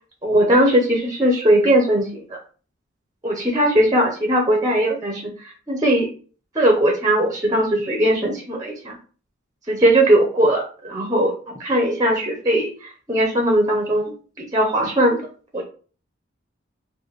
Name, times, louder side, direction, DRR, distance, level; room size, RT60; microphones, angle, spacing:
voice 1, 0.2-2.2 3.2-5.3 5.7-6.1 6.5-9.0 9.7-11.3 11.6-14.1 14.4-15.2 15.5-15.6, right 1 dB, 20° right, 1 dB, 0.7 m, -19 dB
3.3 x 2.2 x 4.0 m, 0.39 s
head